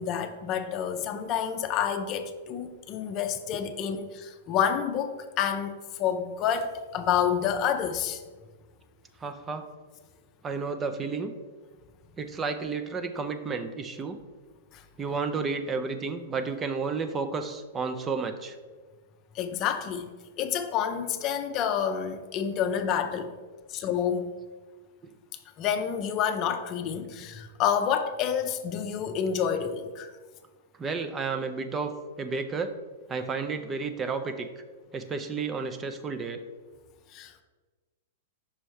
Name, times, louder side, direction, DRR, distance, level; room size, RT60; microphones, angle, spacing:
voice 1, 0.0-8.2 14.7-14.8 19.3-20.1 20.4-23.3 23.7-24.3 25.6-30.1 37.1-37.4, left 8 dB, 40° left, 7 dB, 0.5 m, -29 dB
voice 2, 9.2-9.6 10.4-11.3 12.2-14.2 15.0-18.6 30.8-31.9 32.2-32.7 33.1-34.5 34.9-36.4, right 4 dB, 20° right, 8 dB, 0.5 m, -31 dB
5.5 x 4.3 x 4.7 m, 1.4 s
hypercardioid pair, 115°, 0 cm